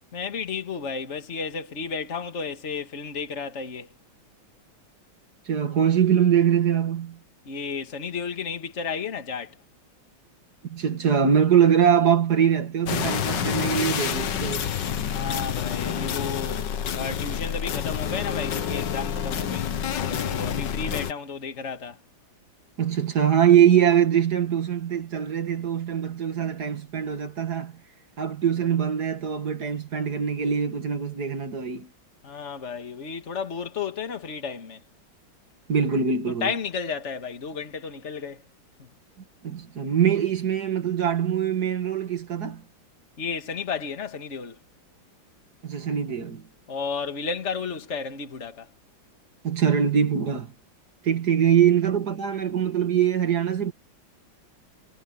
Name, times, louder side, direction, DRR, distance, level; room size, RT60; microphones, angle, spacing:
voice 1, 0.1-3.9 7.5-9.6 15.1-19.7 20.0-22.0 28.6-28.7 32.2-34.8 36.3-38.4 38.8-38.9 43.2-44.6 46.7-48.7, left 5 dB, 35° left, 2.1 m, -33 dB
voice 2, 5.5-7.2 10.7-14.7 22.8-27.8 28.2-31.9 35.7-36.5 39.4-42.6 45.6-46.4 49.4-50.5 51.0-53.7, right 8 dB, 50° right, 2.5 m, -23 dB
sound 1, 12.9-21.1, left 9 dB, 60° left, 1.7 m, -28 dB
omnidirectional pair, 2.2 m